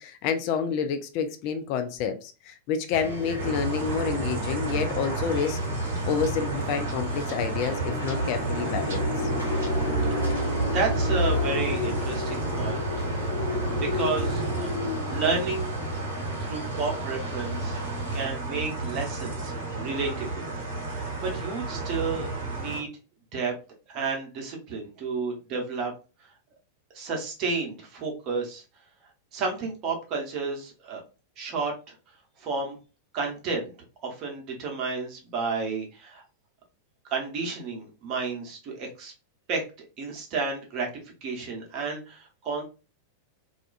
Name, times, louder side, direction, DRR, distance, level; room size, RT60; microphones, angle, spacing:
voice 1, 0.0-9.3, left 7 dB, 45° left, 7 dB, 0.3 m, -29 dB
sound 1, 2.9-18.2, right 1 dB, 85° left, 1.2 m, -35 dB
sound 2, 3.4-22.8, right 3 dB, 60° right, 1.0 m, -32 dB
sound 3, 7.8-16.8, left 2 dB, 65° left, 0.9 m, -30 dB
voice 2, 10.7-12.9 13.7-14.7 15.1-15.7 16.1-17.8 18.1-20.5 20.9-22.3 22.5-22.9 23.3-23.5 23.9-25.9 26.9-28.6 29.3-31.0 31.4-31.7 32.4-32.8 33.1-33.7 34.0-36.2 37.1-39.1 39.5-40.9 41.2-42.6, right 4 dB, 40° right, 0 dB, 0.8 m, -31 dB
2.4 x 2.2 x 2.3 m, 0.32 s
figure-of-eight pair, 90°, 0 cm